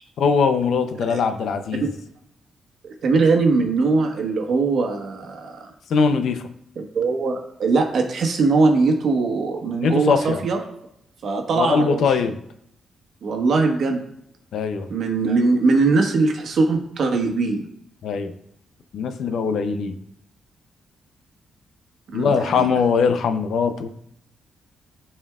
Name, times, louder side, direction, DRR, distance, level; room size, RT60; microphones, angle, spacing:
voice 1, 0.2-1.9 5.9-6.4 9.7-10.4 11.5-12.4 14.5-14.9 18.0-18.3 18.9-20.0 22.1-23.9, left 5 dB, 75° left, 9 dB, 0.6 m, -21 dB
voice 2, 2.8-5.7 6.8-10.6 11.2-12.0 13.2-14.0 14.9-17.6 22.1-22.7, right 3 dB, 65° right, 2 dB, 1.3 m, -21 dB
12.5 x 4.4 x 2.4 m, 0.73 s
cardioid pair, 110°, 0 cm